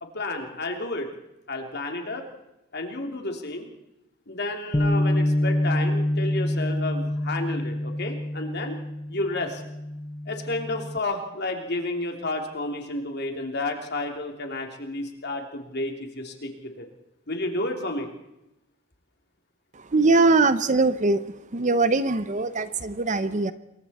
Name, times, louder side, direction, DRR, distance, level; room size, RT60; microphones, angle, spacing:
voice 1, 0.0-1.1 1.5-2.3 2.7-3.7 4.3-8.8 9.1-9.6 10.3-16.9 17.3-18.1, left 2 dB, 50° left, 3 dB, 3.0 m, -31 dB
Bass guitar, 4.7-11.0, left 1 dB, 15° left, 0.7 m, -26 dB
voice 2, 19.7-21.2 21.5-23.5, right 3 dB, 35° right, 13 dB, 0.8 m, -21 dB
27.0 x 22.5 x 4.3 m, 0.90 s
head